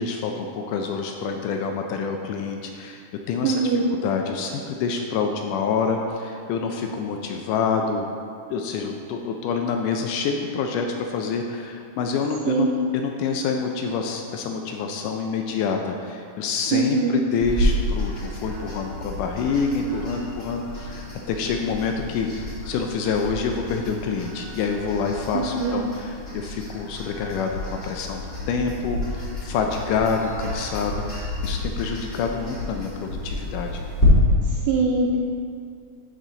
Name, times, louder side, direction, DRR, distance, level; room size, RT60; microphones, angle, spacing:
voice 1, 0.0-3.0 3.3-3.6 3.9-8.1 8.5-12.7 12.9-33.8, left 5 dB, 85° left, 3 dB, 1.9 m, -27 dB
voice 2, 3.4-3.8 12.5-12.7 16.7-17.2 25.3-25.9 34.4-35.2, right 4 dB, 75° right, -2 dB, 2.0 m, -22 dB
sound 1, 17.4-34.1, left 1 dB, 30° left, 1.2 m, -31 dB
10.0 x 4.8 x 3.9 m, 2.4 s
omnidirectional pair, 4.1 m